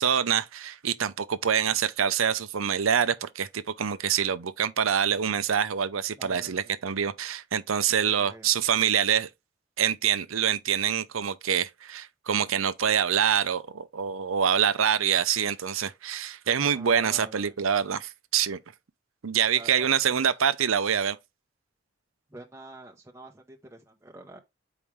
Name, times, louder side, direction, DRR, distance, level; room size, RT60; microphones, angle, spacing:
voice 1, 0.0-9.3 9.8-18.6 19.2-21.2, right 8 dB, 90° right, 0.6 m, -25 dB
voice 2, 6.2-6.7 8.2-8.5 16.7-17.5 19.5-19.9 22.3-24.4, right 2 dB, 15° right, 0.8 m, -47 dB
7.1 x 4.8 x 3.2 m
head